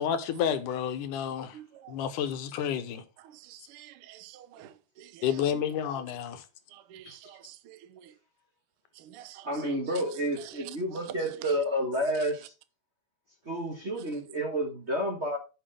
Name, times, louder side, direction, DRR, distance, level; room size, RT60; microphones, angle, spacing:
voice 1, 0.0-1.6 1.9-3.0 5.2-6.4 7.1-7.2, left 8 dB, 80° left, 2.6 m, -30 dB
voice 2, 1.5-2.0 3.2-5.4 6.7-8.1 8.9-10.0 10.4-11.5 12.1-12.3 14.0-14.2, right 12 dB, 75° right, 1.3 m, -48 dB
voice 3, 9.4-12.5 13.5-15.4, equal, 40° right, 1.0 m, -30 dB
11.5 x 6.2 x 3.5 m
omnidirectional pair, 3.6 m